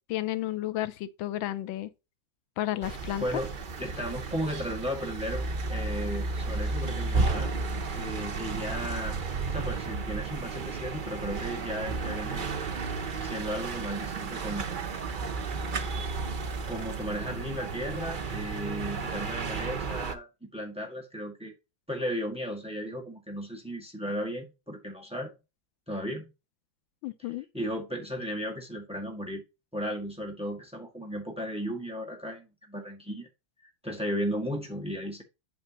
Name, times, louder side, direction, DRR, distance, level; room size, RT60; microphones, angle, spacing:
voice 1, 0.1-1.9 2.6-3.2 27.0-27.4, left 14 dB, 85° left, 1.4 m, -32 dB
sound 1, 2.8-20.1, right 4 dB, 90° right, 0.4 m, -33 dB
voice 2, 3.2-3.5 3.8-7.5 7.9-9.2 9.5-12.5 13.2-14.7 16.6-21.5 21.9-25.3 25.9-26.3 27.5-29.4 29.7-33.3 33.8-35.2, equal, 5° right, 1.6 m, -35 dB
8.7 x 5.8 x 2.9 m
omnidirectional pair, 2.1 m